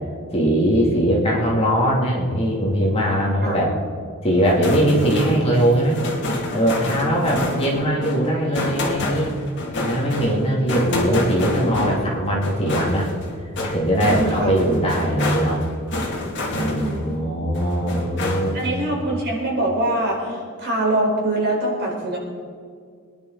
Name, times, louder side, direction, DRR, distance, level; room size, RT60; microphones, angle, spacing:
voice 1, 0.3-3.7 4.2-6.0 6.5-9.3 9.8-13.1 13.7-15.6 16.5-18.9, equal, 30° left, -3 dB, 2.9 m, -20 dB
sound 1, 4.4-17.2 17.5-18.7, left 2 dB, 55° left, 2.6 m, -28 dB
voice 2, 7.0-7.9 14.1-14.6 16.5-17.0 18.5-22.2, right 1 dB, 50° right, -3 dB, 4.8 m, -24 dB
24.0 x 11.0 x 4.1 m, 2.1 s
head